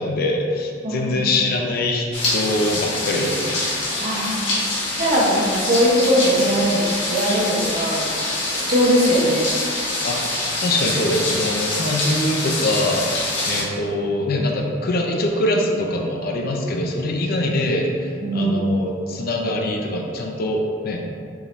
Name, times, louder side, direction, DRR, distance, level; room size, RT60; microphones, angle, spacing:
voice 1, 0.0-2.0 2.3-3.6 10.0-10.2 10.6-13.1 13.4-21.0, left 1 dB, 55° left, 1 dB, 0.5 m, -23 dB
voice 2, 0.8-1.1 4.0-4.4 5.0-8.0 8.5-9.5 18.2-18.6, equal, 50° right, -6 dB, 0.9 m, -20 dB
sound 1, 2.1-13.6, left 2 dB, 70° left, 1.2 m, -25 dB
4.8 x 2.7 x 3.1 m, 2.3 s
head